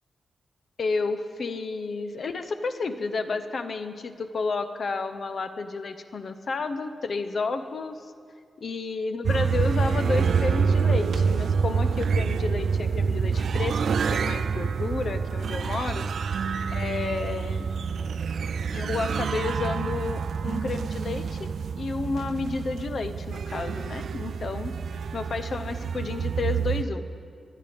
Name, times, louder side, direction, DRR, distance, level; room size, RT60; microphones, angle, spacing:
voice 1, 0.8-8.0 8.6-13.8 14.1-16.1 16.7-17.7 18.7-21.5 21.8-24.7 25.1-27.1, left 4 dB, 50° left, 9 dB, 0.8 m, -31 dB
sound 1, 9.2-26.8, right 5 dB, 70° right, 0.4 m, -27 dB
22.5 x 9.5 x 5.3 m, 2.2 s
wide cardioid pair, 160°, 0 cm